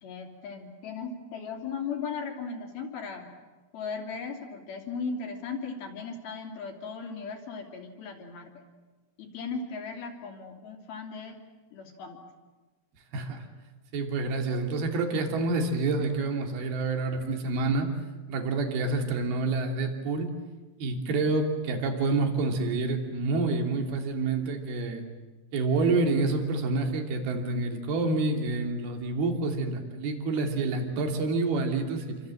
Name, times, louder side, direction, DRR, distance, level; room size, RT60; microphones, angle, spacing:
voice 1, 0.0-3.3 3.7-8.6 9.2-11.4 11.7-12.2, left 5 dB, 55° left, 2 dB, 4.6 m, -37 dB
voice 2, 13.1-13.5 13.9-17.9 18.3-20.3 20.8-25.0 25.5-32.2, right 3 dB, 60° right, 4 dB, 4.4 m, -28 dB
28.5 x 26.0 x 7.8 m, 1.2 s
omnidirectional pair, 5.4 m